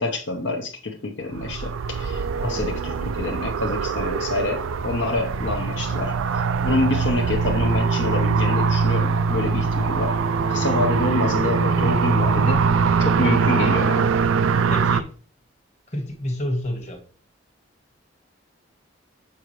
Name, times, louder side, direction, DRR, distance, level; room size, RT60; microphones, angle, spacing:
voice 1, 0.0-6.2 6.6-10.2 10.5-12.6 13.0-14.1, left 2 dB, 65° left, 0.8 m, -27 dB
sound 1, 1.3-15.0, right 5 dB, 90° right, 0.4 m, -22 dB
voice 2, 14.7-15.1 15.9-17.0, left 1 dB, 35° left, 1.4 m, -29 dB
7.1 x 4.9 x 3.1 m
head